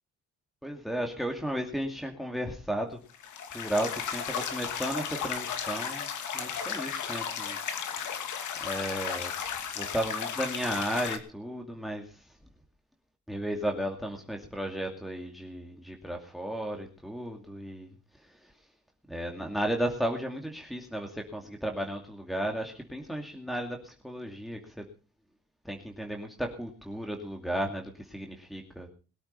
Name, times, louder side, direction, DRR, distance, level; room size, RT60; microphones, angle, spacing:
voice 1, 0.6-3.0 3.5-7.6 7.8-8.2 8.6-9.3 9.8-12.3 13.3-17.9 18.2-18.5 19.1-24.8 25.6-28.9, right 1 dB, ahead, 3 dB, 2.5 m, -34 dB
sound 1, 3.1-11.2, left 7 dB, 75° left, 2.6 m, -34 dB
21.5 x 8.7 x 5.5 m, 0.36 s
cardioid pair, 90°, 30 cm